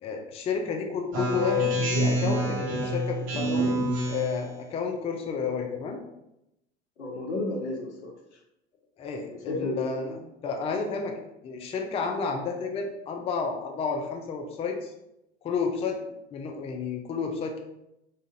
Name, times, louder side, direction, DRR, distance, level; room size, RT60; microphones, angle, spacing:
voice 1, 0.0-6.0 9.0-10.2 10.4-11.1 11.4-14.9 15.4-17.6, left 5 dB, 20° left, 2 dB, 0.4 m, -31 dB
Speech synthesizer, 1.1-4.5, equal, 45° right, 0.9 m, -27 dB
voice 2, 7.0-8.1 9.2-10.2, left 2 dB, 80° left, 1 dB, 0.8 m, -32 dB
4.1 x 2.5 x 2.4 m, 0.85 s
figure-of-eight pair, 75°, 34 cm